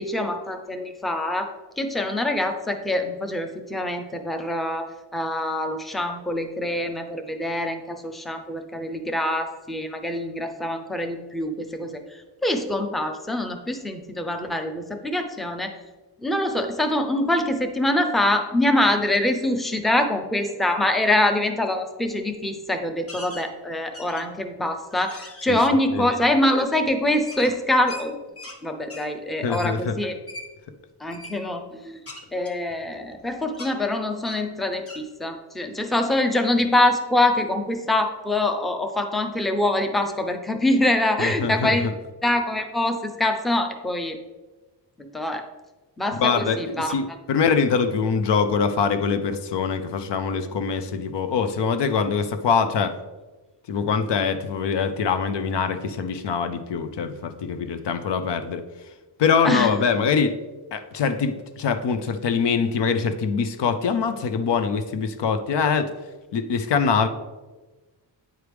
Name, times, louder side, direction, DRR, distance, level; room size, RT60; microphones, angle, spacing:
voice 1, 0.0-1.5 1.8-4.9 5.1-12.0 12.4-15.7 16.2-28.2 28.6-30.2 31.0-32.0 32.3-41.9 42.2-44.2 45.1-45.4 46.0-46.9 59.4-59.7, left 1 dB, ahead, 6 dB, 0.5 m, -24 dB
sound 1, 23.1-23.5 23.9-24.4 24.9-25.5 27.3-28.6 28.9-29.1 29.5-29.7 30.3-30.5 31.1-31.4 32.1-33.2 33.5-33.7 34.2-34.5 34.9-35.0, left 2 dB, 35° left, 0.9 m, -40 dB
voice 2, 29.4-30.0 41.2-41.9 46.2-52.9 53.7-58.6 59.2-60.4 60.7-65.9 66.3-67.1, left 5 dB, 80° left, 9 dB, 0.7 m, -23 dB
9.0 x 4.7 x 3.4 m, 1.2 s
wide cardioid pair, 130°, 42 cm